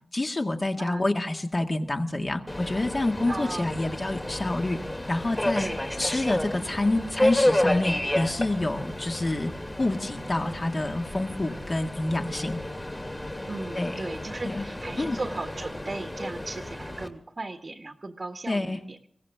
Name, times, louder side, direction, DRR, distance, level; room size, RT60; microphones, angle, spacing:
voice 1, 0.1-4.8 5.1-5.7 6.0-9.5 9.8-12.6 13.8-14.1 14.4-14.6 15.0-15.2 18.5-18.8, left 2 dB, 40° left, 3 dB, 2.1 m, -27 dB
Subway metro underground, 2.5-17.1, left 1 dB, 25° left, 2.6 m, -31 dB
voice 2, 3.3-3.7 5.6-5.9 13.5-19.1, right 2 dB, 50° right, 5 dB, 1.4 m, -37 dB
22.0 x 17.0 x 3.6 m, 0.69 s
cardioid pair, 50°, 0 cm